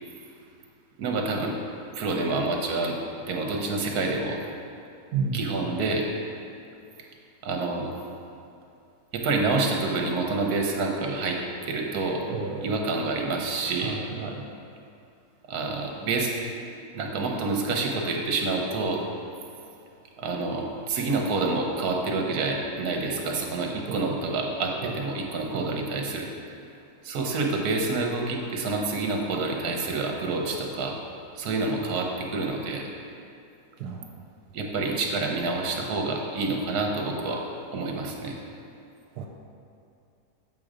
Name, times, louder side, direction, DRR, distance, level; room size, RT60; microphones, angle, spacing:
voice 1, 1.0-1.6 1.9-3.0 3.3-4.4 5.3-6.1 7.4-7.9 9.1-12.2 12.6-14.0 15.5-16.3 16.6-19.0 20.2-26.3 27.0-31.0 31.4-32.8 34.5-37.4 37.7-38.4, right 3 dB, 70° right, 1 dB, 1.3 m, -28 dB
voice 2, 5.1-5.5 12.3-12.7 13.8-14.5 23.9-24.1 24.8-25.0 25.5-25.7 33.8-34.1 39.2-39.3, right 5 dB, 90° right, 0 dB, 1.2 m, -32 dB
7.6 x 3.7 x 5.0 m, 2.6 s
omnidirectional pair, 1.7 m